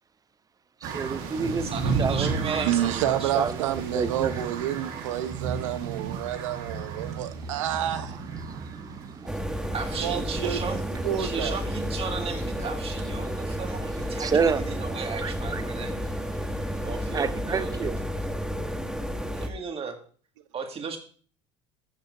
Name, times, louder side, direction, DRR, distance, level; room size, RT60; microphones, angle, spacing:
voice 1, 0.8-1.7 2.0-3.0 3.3-4.3 8.4-9.7 10.4-10.5 11.4-11.5 14.2-14.6 15.2-15.6 17.1-18.0, right 5 dB, 25° right, 14 dB, 0.6 m, -29 dB
sound 1, 0.8-9.9, right 5 dB, 70° right, 1.6 m, -33 dB
voice 2, 1.6-3.5 9.7-10.8 11.2-15.9 16.8-17.8 19.3-20.0 20.5-21.0, right 5 dB, 40° right, 4 dB, 2.0 m, -35 dB
voice 3, 2.6-8.2 10.0-11.6, right 12 dB, 85° right, 11 dB, 0.8 m, -29 dB
sound 2, 9.3-19.5, equal, 5° right, 1.2 m, -31 dB
14.5 x 6.4 x 2.7 m, 0.44 s
hypercardioid pair, 80°, 16 cm